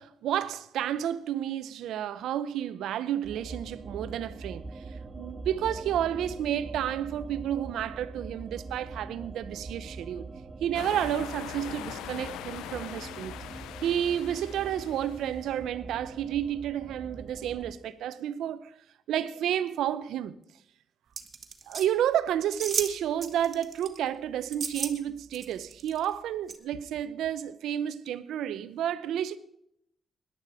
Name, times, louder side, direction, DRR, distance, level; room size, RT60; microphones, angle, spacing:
voice 1, 0.0-4.8 5.1-10.3 10.6-13.3 13.8-18.7 19.1-20.4 21.7-29.4, right 10 dB, 85° right, 0.7 m, -31 dB
sound 1, 3.2-17.7, right 3 dB, 35° right, 2.4 m, -43 dB
sound 2, 10.7-15.5, left 12 dB, 90° left, 0.4 m, -42 dB
sound 3, 21.2-21.9 22.6-22.9 23.2-24.0 24.5-24.9 25.3-26.0 26.5-26.6, right 5 dB, 50° right, 1.6 m, -33 dB
17.5 x 11.0 x 4.9 m
supercardioid pair, 55°, 0 cm